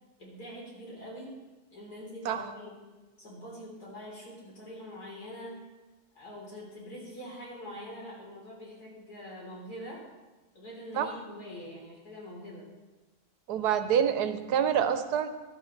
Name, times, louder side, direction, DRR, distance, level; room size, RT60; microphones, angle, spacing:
voice 1, 0.2-1.3 1.7-2.8 3.2-5.6 6.2-10.0 10.5-12.7, equal, 80° left, -4 dB, 4.2 m, -44 dB
voice 2, 13.5-15.3, right 8 dB, 90° right, 10 dB, 1.3 m, -27 dB
15.0 x 11.5 x 3.2 m, 1.2 s
omnidirectional pair, 1.6 m